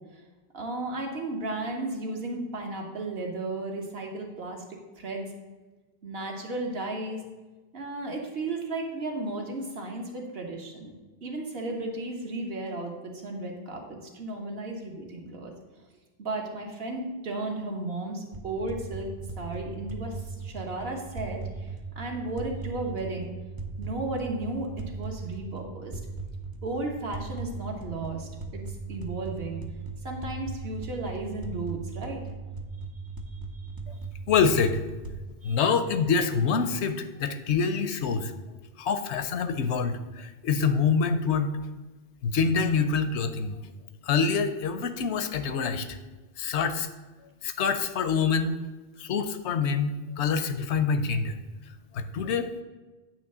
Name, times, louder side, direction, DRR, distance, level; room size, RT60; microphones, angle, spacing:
voice 1, 0.5-5.3 6.0-7.2 7.7-15.5 16.2-19.1 19.4-23.3 23.8-26.0 26.6-28.6 28.9-29.6 30.0-32.2 33.3-33.7 35.4-35.6, right 2 dB, 60° right, 1 dB, 1.4 m, -34 dB
sound 1, 18.3-35.1, right 4 dB, 35° right, 0.4 m, -38 dB
voice 2, 34.3-34.8 35.4-38.3 38.8-41.6 42.2-43.6 44.0-46.0 46.4-46.9 47.4-48.6 49.0-51.4 51.9-52.5, left 5 dB, 75° left, 10 dB, 0.9 m, -26 dB
9.0 x 3.2 x 6.6 m, 1.2 s
omnidirectional pair, 1.2 m